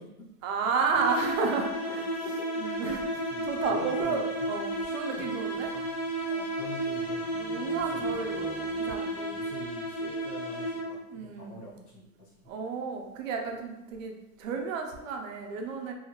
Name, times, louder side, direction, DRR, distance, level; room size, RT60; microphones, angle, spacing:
voice 1, 0.4-2.1 2.6-5.7 7.3-9.3 11.1-11.6 12.5-15.9, right 5 dB, 60° right, 3 dB, 0.6 m, -32 dB
sound 1, 0.9-11.1, right 1 dB, 40° left, 1.2 m, -33 dB
voice 2, 2.1-2.7 3.1-4.5 4.8-5.3 5.7-5.9 6.3-7.6 7.9-8.1 9.3-12.5, left 2 dB, 80° left, -5 dB, 1.3 m, -46 dB
sound 2, 3.3-10.3, right 1 dB, 15° right, 0.4 m, -52 dB
2.7 x 2.5 x 2.9 m, 0.96 s
supercardioid pair, 150°, 45 cm